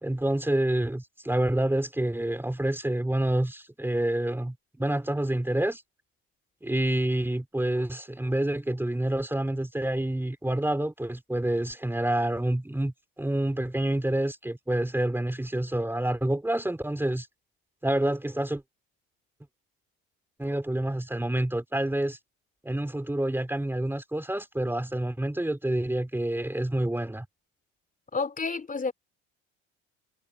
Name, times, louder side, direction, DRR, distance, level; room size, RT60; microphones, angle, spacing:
voice 1, 0.0-5.8 6.6-17.3 17.8-18.6 20.4-22.2 22.6-27.2, right 1 dB, 5° right, 3.3 m, -28 dB
voice 2, 28.1-28.9, left 4 dB, 25° left, 4.0 m, -30 dB
hypercardioid pair, 75°, 33 cm